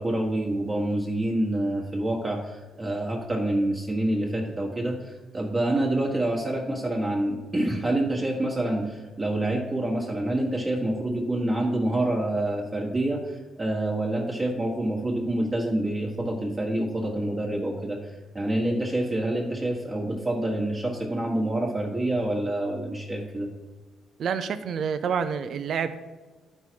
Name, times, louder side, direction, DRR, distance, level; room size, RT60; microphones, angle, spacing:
voice 1, 0.0-23.5, right 1 dB, 20° right, -1 dB, 1.4 m, -27 dB
voice 2, 24.2-25.9, right 7 dB, 60° right, 10 dB, 0.5 m, -28 dB
11.5 x 5.5 x 4.6 m, 1.2 s
cardioid pair, 120°, 0 cm